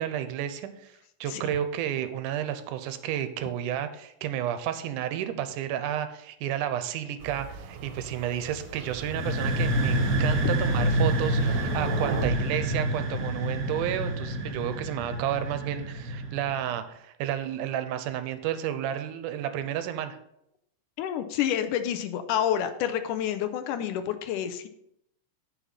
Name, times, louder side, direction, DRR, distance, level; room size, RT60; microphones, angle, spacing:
voice 1, 0.0-20.2, right 10 dB, 90° right, 10 dB, 2.2 m, -31 dB
Thunder, 7.2-12.3, right 6 dB, 70° right, 2.0 m, -38 dB
sound 1, 9.0-16.6, right 1 dB, 55° right, 0.9 m, -27 dB
voice 2, 21.0-24.7, left 10 dB, 85° left, 9 dB, 2.2 m, -28 dB
9.9 x 5.8 x 4.0 m, 0.77 s
omnidirectional pair, 3.6 m